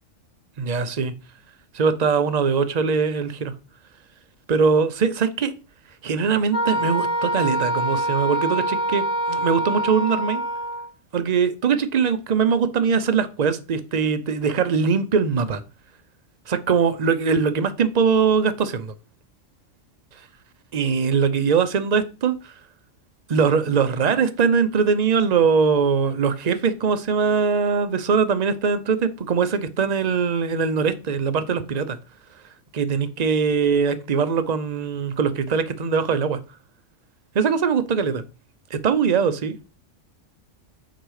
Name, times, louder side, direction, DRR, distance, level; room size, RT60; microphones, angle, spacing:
voice 1, 0.6-1.1 1.7-3.5 4.5-5.5 6.0-10.4 11.1-15.6 16.5-18.9 20.7-22.5 23.3-32.0 32.7-36.4 37.3-38.2 38.7-39.7, right 6 dB, 40° right, 0.6 m, -21 dB
Wind instrument woodwind instrument, 6.5-10.9, right 1 dB, 55° left, 2.6 m, -25 dB
6.5 x 4.9 x 4.8 m
omnidirectional pair, 1.3 m